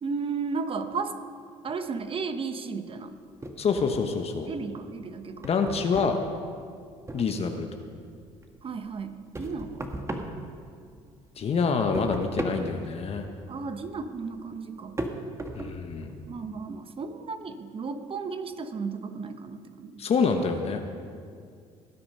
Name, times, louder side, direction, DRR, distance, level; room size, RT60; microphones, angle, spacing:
voice 1, 0.0-1.1 1.6-3.1 4.5-5.5 8.6-9.9 13.5-15.0 16.3-20.0, right 4 dB, 40° right, 9 dB, 1.0 m, -34 dB
sound 1, 3.4-4.5 4.8-7.7 8.1-11.1 11.4-16.3, right 2 dB, 20° right, 1.5 m, -38 dB
voice 2, 3.6-4.5 5.4-6.2 7.1-7.7 11.4-13.3 15.6-16.2 20.0-20.8, left 5 dB, 45° left, 5 dB, 1.1 m, -26 dB
18.5 x 8.6 x 5.5 m, 2.2 s
supercardioid pair, 75°, 14 cm